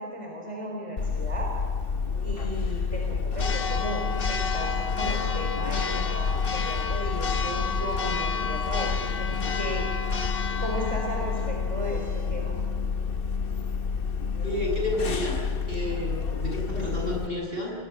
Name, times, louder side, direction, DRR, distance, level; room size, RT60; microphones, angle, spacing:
voice 1, 0.0-1.5 2.2-9.9 10.2-12.6 16.7-17.1, equal, 30° right, 0 dB, 4.3 m, -35 dB
Church bell, 1.0-17.3, left 5 dB, 60° left, 1.3 m, -28 dB
voice 2, 14.4-15.4 15.7-17.7, left 1 dB, 60° right, -2 dB, 7.9 m, -30 dB
27.5 x 21.5 x 7.1 m, 2.1 s
omnidirectional pair, 1.1 m